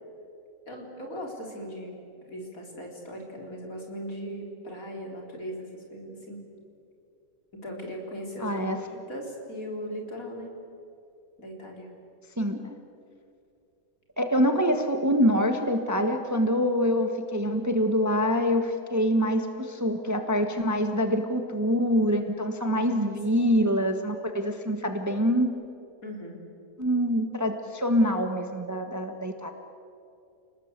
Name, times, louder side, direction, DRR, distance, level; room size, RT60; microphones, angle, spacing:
voice 1, 0.7-1.9 2.3-6.4 7.5-10.5 11.4-11.9 22.7-23.4 26.0-26.4, equal, 55° left, 1 dB, 4.6 m, -38 dB
voice 2, 8.4-8.8 12.4-12.8 14.2-25.5 26.8-29.5, equal, 10° right, 6 dB, 1.3 m, -25 dB
29.5 x 19.0 x 8.1 m, 2.6 s
omnidirectional pair, 1.7 m